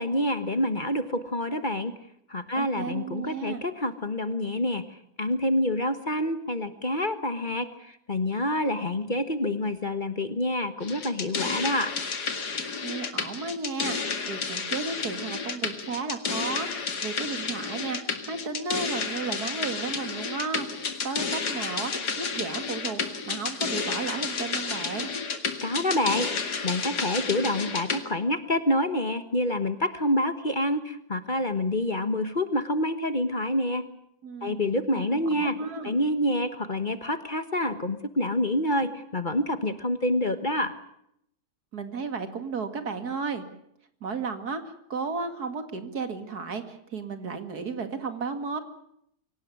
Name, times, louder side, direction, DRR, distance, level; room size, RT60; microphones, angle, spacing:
voice 1, 0.0-1.9 2.3-4.8 5.2-11.9 25.6-26.3 26.6-33.8 34.4-35.5 35.8-40.7, left 1 dB, 30° left, 11 dB, 1.4 m, -27 dB
voice 2, 2.5-3.6 12.8-23.0 23.3-25.1 34.2-34.6 34.9-35.9 41.7-43.4 44.0-48.6, right 4 dB, 70° right, 9 dB, 2.7 m, -34 dB
sound 1, 10.8-28.0, left 5 dB, 80° left, 2.7 m, -31 dB
25.0 x 17.5 x 9.4 m, 0.74 s
omnidirectional pair, 1.7 m